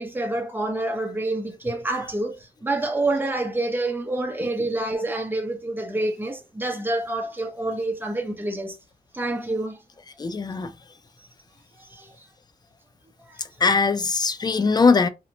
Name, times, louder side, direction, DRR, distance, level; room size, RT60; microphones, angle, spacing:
voice 1, 0.0-8.8 9.1-9.8 11.2-11.3 11.8-12.3 13.3-13.5, right 2 dB, 15° right, 0.7 m, -27 dB
voice 2, 10.2-10.7 13.6-15.1, left 4 dB, 25° left, 0.4 m, -20 dB
2.9 x 2.1 x 2.6 m
cardioid pair, 95°, 15 cm